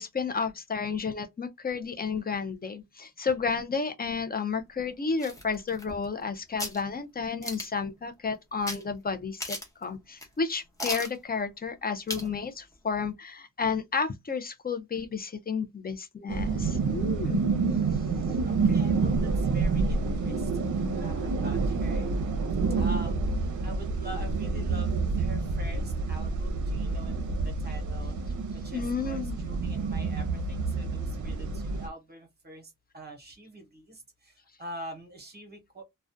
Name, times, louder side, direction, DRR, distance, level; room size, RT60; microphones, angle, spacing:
voice 1, 0.0-17.4 28.7-29.4, left 5 dB, 30° left, 0.3 m, -32 dB
sound 1, 5.2-6.2 6.6-6.8 7.4-7.8 8.7-8.8 9.1-9.2 9.4-9.8 10.2-10.3 10.8-11.2 12.1-12.3 12.7-12.8, left 1 dB, 10° left, 0.7 m, -35 dB
sound 2, 16.3-31.9, right 4 dB, 65° right, 0.5 m, -28 dB
voice 2, 18.4-22.1 22.7-35.8, right 1 dB, 30° right, 0.8 m, -45 dB
2.3 x 2.1 x 2.5 m
wide cardioid pair, 150°, 32 cm